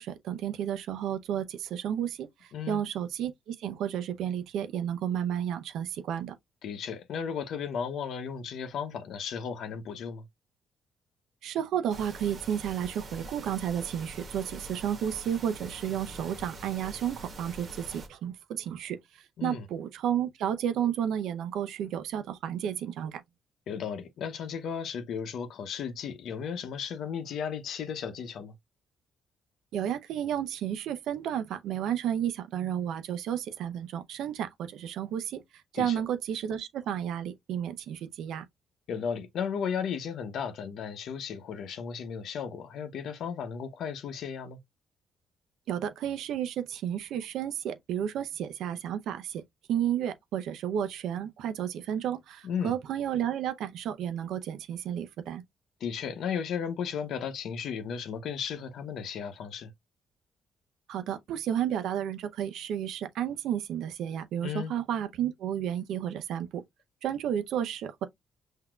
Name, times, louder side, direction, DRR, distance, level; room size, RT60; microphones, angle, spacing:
voice 1, 0.0-6.4 11.4-23.2 29.7-35.4 35.7-38.5 45.7-49.4 49.7-55.4 60.9-66.6 67.0-68.1, right 9 dB, 80° right, 0.6 m, -32 dB
voice 2, 2.5-2.8 6.6-10.2 19.4-19.7 23.7-28.5 35.7-36.0 38.9-44.6 52.4-52.8 55.8-59.7 64.4-64.7, left 7 dB, 75° left, 0.8 m, -35 dB
sound 1, 11.9-18.1, right 2 dB, 50° right, 1.3 m, -44 dB
5.8 x 2.7 x 2.3 m
cardioid pair, 90°, 0 cm